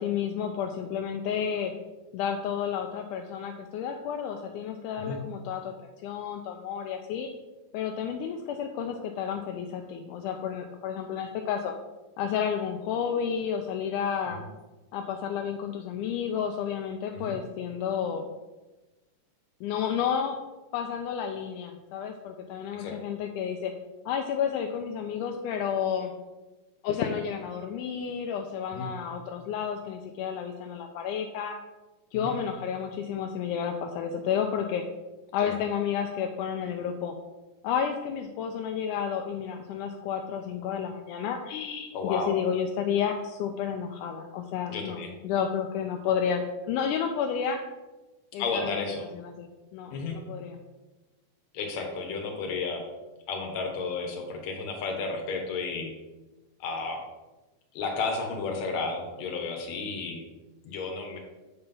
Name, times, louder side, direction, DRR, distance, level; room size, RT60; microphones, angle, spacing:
voice 1, 0.0-1.7 2.1-5.7 6.0-7.3 7.7-11.7 12.2-14.4 14.9-18.3 19.6-20.4 20.7-23.7 24.1-26.1 26.8-31.6 32.1-34.8 35.3-37.2 37.6-47.6 48.3-48.8 49.1-50.6, left 8 dB, 80° left, 4 dB, 1.9 m, -31 dB
voice 2, 41.9-42.3 44.7-45.1 48.4-49.1 49.9-50.2 51.5-52.8 53.3-55.9 56.6-57.0 57.7-60.2 60.6-61.2, left 4 dB, 60° left, 3 dB, 2.2 m, -32 dB
7.8 x 4.3 x 5.4 m, 1.1 s
omnidirectional pair, 4.0 m